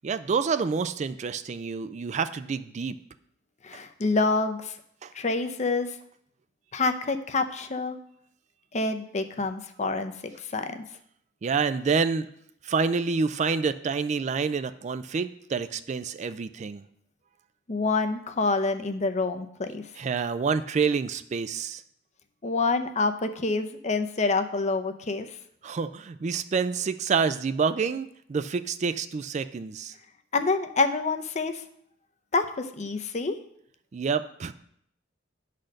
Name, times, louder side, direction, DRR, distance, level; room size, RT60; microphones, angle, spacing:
voice 1, 0.0-3.0 5.0-5.1 11.4-12.3 12.6-16.8 20.0-21.8 25.6-29.9 33.9-34.5, right 5 dB, 40° right, 11 dB, 0.3 m, -28 dB
voice 2, 3.6-4.7 5.1-6.0 6.7-8.0 8.7-10.8 17.7-19.8 22.4-25.4 30.3-31.6 32.3-33.4, left 3 dB, 40° left, 9 dB, 0.6 m, -27 dB
10.0 x 4.2 x 6.4 m, 0.69 s
head